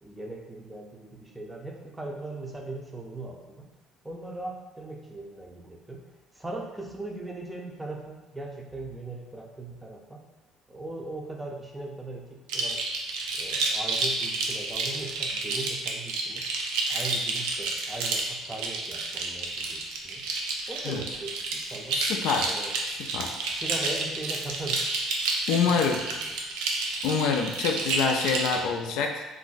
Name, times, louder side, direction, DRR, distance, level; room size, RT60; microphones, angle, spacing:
voice 1, 0.0-3.7 4.0-6.0 6.3-10.2 10.7-12.8 13.3-16.5 16.9-20.3 20.7-22.0 22.4-23.1 23.4-24.9 25.7-26.3, right 2 dB, 10° right, 0 dB, 0.5 m, -39 dB
sound 1, 12.5-28.6, right 3 dB, 90° right, 0.4 m, -30 dB
voice 2, 21.9-22.5 23.1-23.3 25.5-26.0 27.0-29.3, left 5 dB, 75° left, 4 dB, 0.3 m, -26 dB
2.5 x 2.1 x 3.8 m, 1.1 s
cardioid pair, 100°, 0 cm